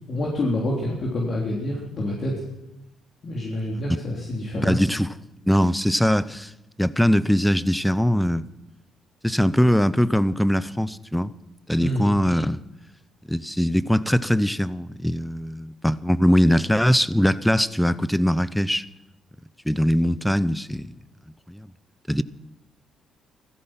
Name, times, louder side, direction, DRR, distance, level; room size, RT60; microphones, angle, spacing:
voice 1, 0.1-2.4 3.2-4.8 11.8-12.1, left 1 dB, 50° left, 3.4 m, -27 dB
voice 2, 4.6-5.1 5.5-6.5 6.8-8.5 9.2-11.3 11.7-12.6 13.3-18.8 19.7-20.9 21.5-21.7 22.1-22.2, equal, 5° left, 0.7 m, -21 dB
15.5 x 14.0 x 5.8 m
cardioid pair, 80°, 0 cm